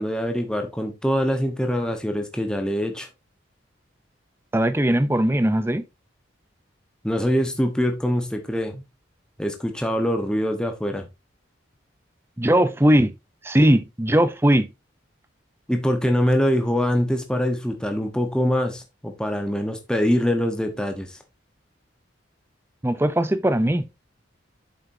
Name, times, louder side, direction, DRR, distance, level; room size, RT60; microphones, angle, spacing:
voice 1, 0.0-3.1 7.0-8.8 9.4-11.1 15.7-21.2, equal, 5° left, 1.1 m, -24 dB
voice 2, 4.5-5.8 12.4-13.1 13.4-14.7 22.8-23.9, right 1 dB, 10° right, 0.6 m, -19 dB
8.4 x 7.1 x 2.7 m
head